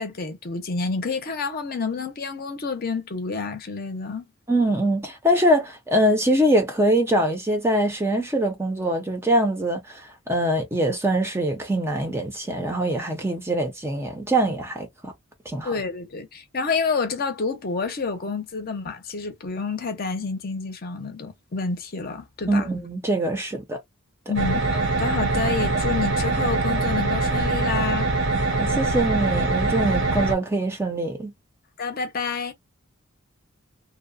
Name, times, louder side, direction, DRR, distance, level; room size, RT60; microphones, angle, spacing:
voice 1, 0.0-4.2 15.6-22.7 24.3-28.1 31.8-32.5, left 4 dB, 45° left, 0.6 m, -29 dB
voice 2, 4.5-15.1 15.5-15.7 22.5-23.8 28.6-31.3, right 1 dB, 10° right, 0.5 m, -23 dB
sound 1, 24.4-30.4, right 3 dB, 60° right, 0.7 m, -23 dB
2.7 x 2.1 x 2.4 m
head